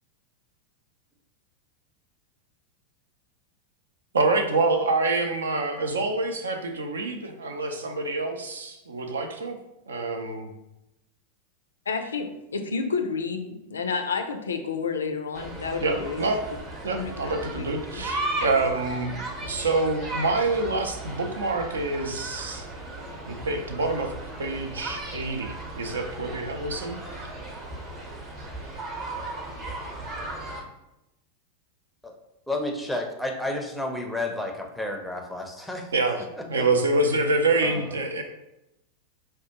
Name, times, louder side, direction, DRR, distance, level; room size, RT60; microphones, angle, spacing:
voice 1, 4.1-9.6 9.9-10.5 15.8-16.4 16.8-22.7 23.3-24.1 24.4-27.0 35.9-36.2 36.5-38.2, right 3 dB, 70° right, 5 dB, 0.4 m, -26 dB
voice 2, 11.9-16.3 16.9-17.2 17.6-17.7 17.9-18.0, left 5 dB, 70° left, 6 dB, 0.4 m, -30 dB
sound 1, 15.3-30.6, right 2 dB, 30° right, 0.8 m, -36 dB
voice 3, 32.5-36.7 37.6-38.0, left 1 dB, ahead, 2 dB, 0.5 m, -32 dB
4.8 x 2.2 x 2.9 m, 0.91 s
figure-of-eight pair, 90°, 0 cm